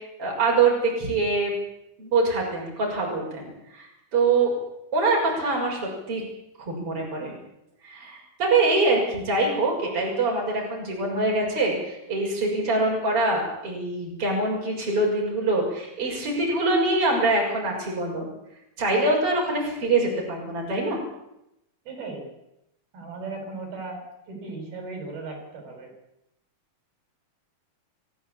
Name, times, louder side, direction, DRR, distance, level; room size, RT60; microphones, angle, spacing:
voice 1, 0.2-1.5 2.0-3.9 4.1-4.5 4.9-6.2 6.6-7.3 7.8-18.3 18.8-21.0, right 3 dB, 35° right, -1 dB, 7.3 m, -24 dB
voice 2, 21.9-22.3 22.9-25.9, right 3 dB, 85° right, 3 dB, 8.9 m, -37 dB
25.5 x 16.5 x 8.6 m, 0.86 s
omnidirectional pair, 4.2 m